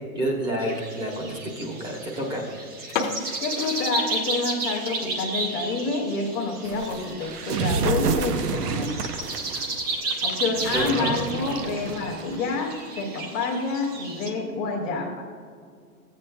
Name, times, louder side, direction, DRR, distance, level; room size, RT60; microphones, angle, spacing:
voice 1, 0.1-2.4 10.7-11.1, right 1 dB, 10° right, -1 dB, 1.1 m, -29 dB
sound 1, 0.6-14.3, right 2 dB, 25° right, 0.7 m, -33 dB
sound 2, 2.9-4.7 5.1-5.2 5.7-5.9 6.3-6.4 6.6-6.7 7.5-7.8, left 5 dB, 35° left, 0.8 m, -33 dB
voice 2, 3.4-9.2 10.2-15.2, left 4 dB, 10° left, -9 dB, 0.4 m, -28 dB
sound 3, 6.6-12.5, right 5 dB, 85° right, 0.9 m, -29 dB
15.0 x 8.6 x 2.2 m, 2.1 s
hypercardioid pair, 155°, 46 cm